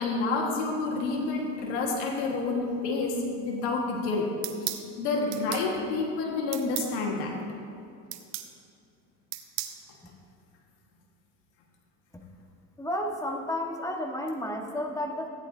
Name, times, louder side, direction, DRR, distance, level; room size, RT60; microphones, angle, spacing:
voice 1, 0.0-4.3 5.0-7.3, left 3 dB, 90° left, 0 dB, 1.6 m, -29 dB
sound 1, 4.4-4.9 5.3-5.7 6.5-6.9 8.1-8.5 9.3-9.8, right 14 dB, 90° right, 0.9 m, -34 dB
voice 2, 12.8-15.3, left 1 dB, 10° left, 2 dB, 1.5 m, -32 dB
16.5 x 10.0 x 2.7 m, 2.5 s
supercardioid pair, 100°, 34 cm